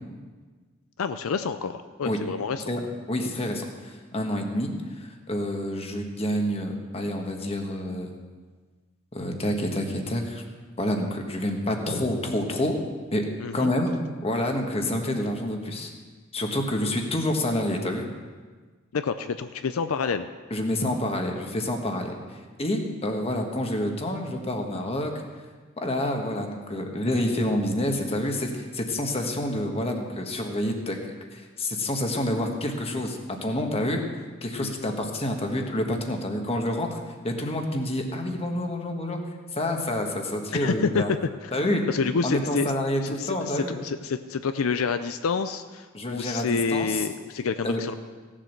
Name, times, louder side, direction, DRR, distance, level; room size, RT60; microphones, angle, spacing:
voice 1, 1.0-2.7 13.4-13.7 18.9-20.3 34.6-34.9 40.5-41.0 41.4-41.5 41.9-42.7 43.0-47.9, left 5 dB, 80° left, 10 dB, 0.5 m, -28 dB
voice 2, 3.1-4.7 5.0-8.1 9.1-10.4 10.8-12.8 13.1-13.2 13.5-15.9 16.3-18.1 20.5-22.1 22.6-25.1 25.8-31.0 31.3-34.0 34.4-37.0 37.2-39.2 39.5-41.1 41.5-41.8 42.2-43.8 45.9-47.0 47.6-47.8, left 1 dB, 30° left, 3 dB, 1.4 m, -28 dB
16.0 x 7.6 x 6.6 m, 1.4 s
head